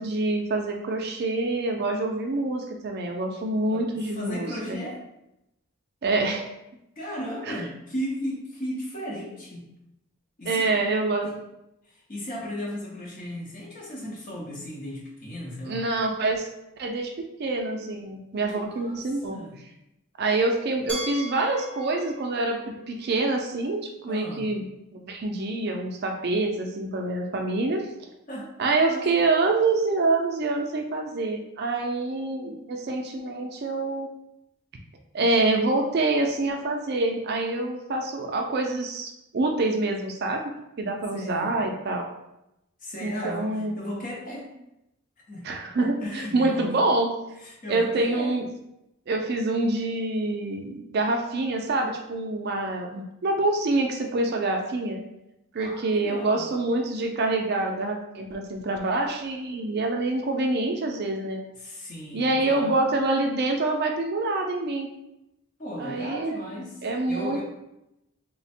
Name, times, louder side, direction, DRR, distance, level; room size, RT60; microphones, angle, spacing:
voice 1, 0.0-4.8 6.0-6.5 7.4-7.6 10.5-11.3 15.7-16.5 16.8-19.4 20.2-22.6 22.9-24.6 24.9-27.9 28.6-34.1 35.1-40.4 40.8-42.1 43.0-43.7 45.4-47.1 47.7-48.5 49.1-55.0 55.5-61.4 62.1-64.9 65.8-66.4 66.8-67.4, right 2 dB, 45° right, 2 dB, 0.4 m, -26 dB
voice 2, 3.7-5.0 7.0-9.7 10.4-10.7 11.2-11.4 11.9-15.8 18.5-19.0 19.3-19.5 24.1-24.5 28.3-28.5 28.8-29.1 41.1-41.6 42.8-44.5 45.3-45.5 45.8-46.7 47.4-48.3 55.6-56.5 61.6-62.7 65.6-66.8 67.1-67.4, equal, 35° left, -2 dB, 0.8 m, -35 dB
Glass, 20.9-23.8, right 1 dB, 5° left, 0.6 m, -39 dB
3.2 x 2.1 x 4.2 m, 0.86 s
head